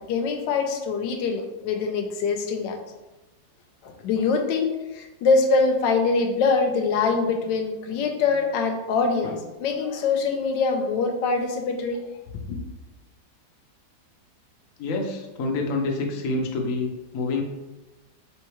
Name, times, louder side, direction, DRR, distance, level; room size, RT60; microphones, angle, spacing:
voice 1, 0.0-2.8 3.8-12.0 12.5-12.6, left 4 dB, 85° left, 4 dB, 1.3 m, -24 dB
voice 2, 14.8-17.4, left 3 dB, 60° left, 1 dB, 0.9 m, -27 dB
4.6 x 3.5 x 3.0 m, 1.1 s
omnidirectional pair, 1.9 m